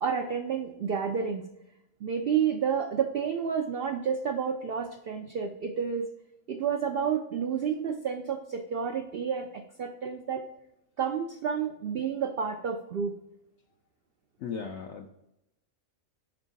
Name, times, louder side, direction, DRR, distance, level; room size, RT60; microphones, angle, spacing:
voice 1, 0.0-1.4 2.0-6.1 6.5-10.4 11.0-13.1, right 7 dB, 60° right, 3 dB, 0.6 m, -30 dB
voice 2, 14.4-15.1, left 6 dB, 65° left, 2 dB, 0.8 m, -36 dB
5.8 x 4.5 x 3.9 m, 0.86 s
omnidirectional pair, 1.4 m